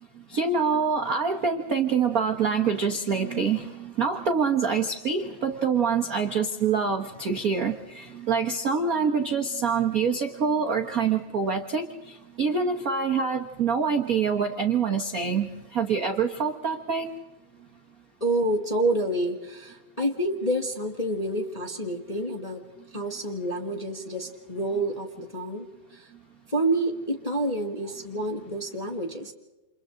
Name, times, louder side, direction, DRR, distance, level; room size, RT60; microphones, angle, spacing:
voice 1, 0.3-17.1, right 5 dB, 70° right, 4 dB, 0.8 m, -26 dB
voice 2, 18.2-22.6 22.9-25.7 26.5-29.3, right 1 dB, 20° left, 1 dB, 0.9 m, -28 dB
29.5 x 28.0 x 3.9 m, 1.1 s
omnidirectional pair, 3.4 m